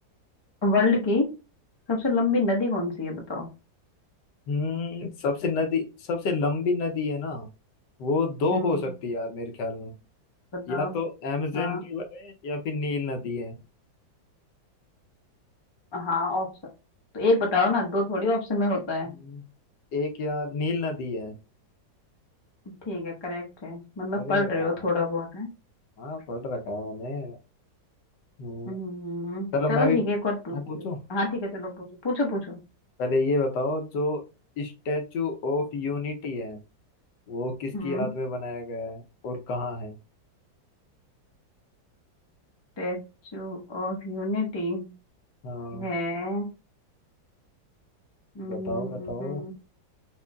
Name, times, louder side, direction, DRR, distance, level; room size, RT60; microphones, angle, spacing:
voice 1, 0.6-1.3 1.9-3.5 8.5-8.9 10.5-11.0 11.5-11.8 15.9-16.5 17.1-19.2 22.9-25.5 28.6-30.8 31.1-32.6 37.7-38.1 42.8-43.0 43.3-44.9 45.7-46.5 48.3-49.5, left 2 dB, 30° left, 0 dB, 0.5 m, -27 dB
voice 2, 4.5-7.5 8.0-9.9 10.7-13.6 19.2-19.4 19.9-21.3 24.2-24.7 26.0-27.4 28.4-28.8 29.5-30.0 30.5-31.0 33.0-34.2 34.6-36.6 37.3-40.0 45.4-45.9 48.4-49.4, left 3 dB, 70° left, 4 dB, 1.3 m, -29 dB
4.4 x 2.6 x 2.2 m, 0.30 s
omnidirectional pair, 2.1 m